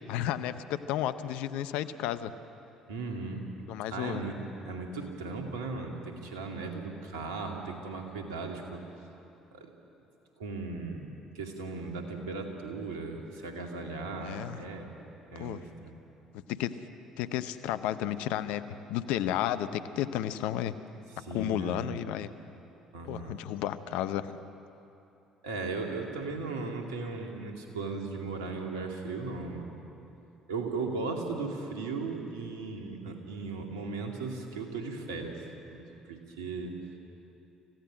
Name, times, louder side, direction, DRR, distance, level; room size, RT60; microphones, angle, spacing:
voice 1, 0.1-2.3 3.7-4.2 14.2-14.6 15.4-15.6 16.3-16.8 17.2-18.6 18.9-20.8 21.3-22.3 23.0-24.4, left 12 dB, 70° left, 12 dB, 0.7 m, -32 dB
voice 2, 2.9-3.4 3.9-8.8 9.5-9.7 10.4-14.9 15.3-16.0 21.2-21.9 22.9-23.4 25.4-29.8 30.5-36.8, right 3 dB, 80° right, 2 dB, 2.2 m, -37 dB
26.0 x 16.0 x 6.3 m, 2.8 s
hypercardioid pair, 55°, 2 cm